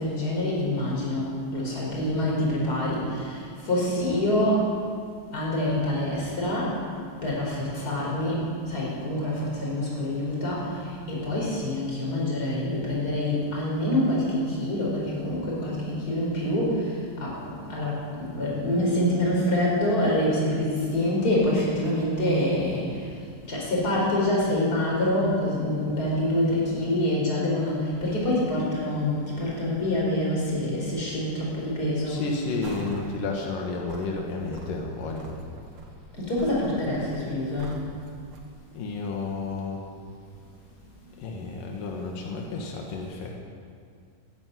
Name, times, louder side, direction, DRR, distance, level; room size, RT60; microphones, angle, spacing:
voice 1, 0.0-4.8 5.3-6.8 7.2-23.1 23.5-32.3 36.2-37.8, left 1 dB, 25° left, -4 dB, 5.2 m, -26 dB
voice 2, 32.1-35.4 38.7-39.8 41.2-43.3, left 3 dB, 85° left, 0 dB, 3.1 m, -31 dB
sound 1, 32.6-33.2 33.6-38.5, right 4 dB, 55° right, 1.7 m, -43 dB
14.0 x 11.0 x 9.4 m, 2.2 s
omnidirectional pair, 3.8 m